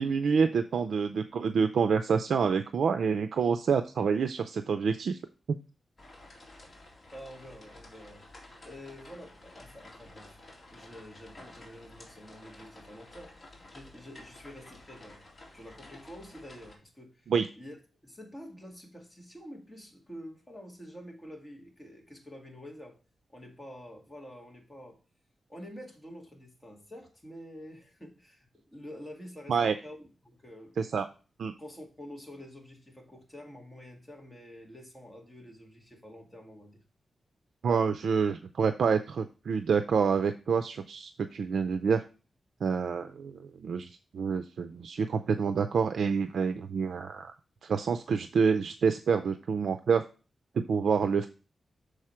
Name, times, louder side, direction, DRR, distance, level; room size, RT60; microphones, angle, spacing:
voice 1, 0.0-5.2 17.3-17.4 29.5-29.7 30.8-31.1 31.4-31.5 37.6-42.0 42.6-47.3 47.7-50.0 50.5-51.3, right 6 dB, 80° right, 0.4 m, -27 dB
sound 1, 6.0-16.7, left 2 dB, 35° left, 2.3 m, -52 dB
voice 2, 6.5-8.2 8.6-10.4 10.7-15.2 15.5-17.8 18.0-23.0 23.3-25.0 25.5-30.7 31.6-36.8, equal, 15° left, 2.0 m, -48 dB
6.5 x 4.8 x 4.3 m
wide cardioid pair, 90°, 0 cm